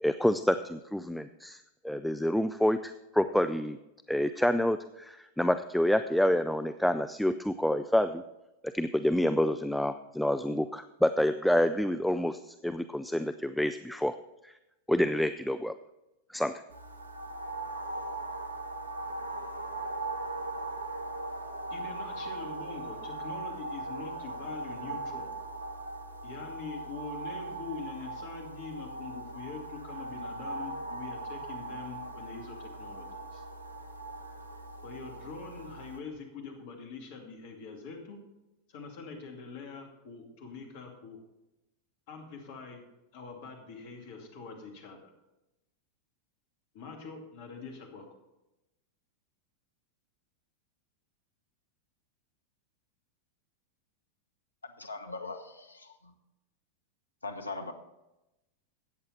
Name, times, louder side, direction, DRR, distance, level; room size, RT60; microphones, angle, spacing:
voice 1, 0.0-3.8 4.1-8.2 8.6-14.2 14.4-14.5 14.9-15.8 16.3-16.6, equal, ahead, 10 dB, 0.4 m, -28 dB
sound 1, 16.7-36.0, right 2 dB, 80° right, 1.0 m, -39 dB
voice 2, 21.7-25.3 26.2-33.4 34.8-38.2 38.7-41.2 42.1-42.8 43.1-45.1 46.7-48.1, left 4 dB, 50° left, 2 dB, 2.5 m, -44 dB
voice 3, 54.6-56.1 57.2-57.7, left 3 dB, 80° left, 7 dB, 1.1 m, -40 dB
14.0 x 8.7 x 4.3 m, 0.95 s
figure-of-eight pair, 90°, 0 cm